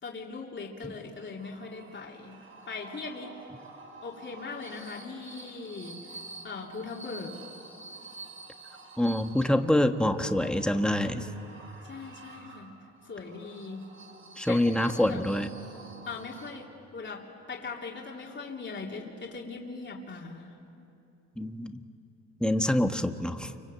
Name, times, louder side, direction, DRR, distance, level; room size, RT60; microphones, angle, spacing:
voice 1, 0.0-2.4 2.7-3.4 4.0-6.2 6.4-7.4 11.8-12.8 13.0-13.9 14.5-15.5 16.0-20.6, left 4 dB, 40° left, -2 dB, 3.3 m, -40 dB
sound 1, 1.2-16.9, right 3 dB, 45° right, 5.4 m, -49 dB
voice 2, 9.0-11.3 14.4-15.5 21.4-21.8 22.4-23.5, left 1 dB, 5° left, 6 dB, 1.4 m, -26 dB
29.5 x 25.0 x 8.1 m, 2.7 s
cardioid pair, 90°, 30 cm